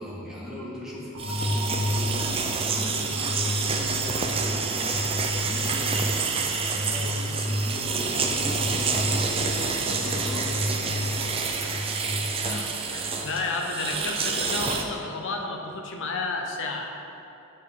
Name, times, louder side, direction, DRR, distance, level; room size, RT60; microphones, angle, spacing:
voice 1, 0.0-2.3 2.6-6.3 6.7-9.4 9.8-11.4, equal, ahead, -7 dB, 1.6 m, -38 dB
sound 1, 1.1-13.1, left 1 dB, 75° right, 1.5 m, -32 dB
sound 2, 1.2-14.8, right 4 dB, 25° right, 0.5 m, -28 dB
voice 2, 9.8-10.2 11.6-12.0 12.4-16.9, left 3 dB, 60° left, 2 dB, 0.8 m, -32 dB
8.2 x 6.7 x 3.8 m, 2.9 s
head